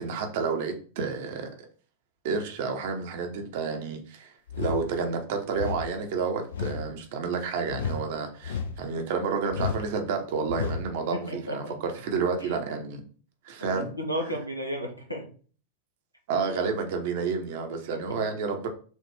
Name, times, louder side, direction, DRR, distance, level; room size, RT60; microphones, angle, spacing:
voice 1, 0.0-1.5 2.2-4.3 4.6-13.0 13.4-13.9 16.3-18.7, right 5 dB, 50° right, 0.9 m, -30 dB
sound 1, 4.5-4.9 5.5-5.9 6.5-6.9 7.7-8.1 8.4-8.9 9.5-9.9 10.5-10.9, left 6 dB, 65° left, 0.5 m, -31 dB
voice 2, 11.1-11.7 12.4-12.6 13.7-15.3 17.9-18.0, equal, 90° left, 0.9 m, -33 dB
6.2 x 2.5 x 3.3 m
figure-of-eight pair, 90°, 0 cm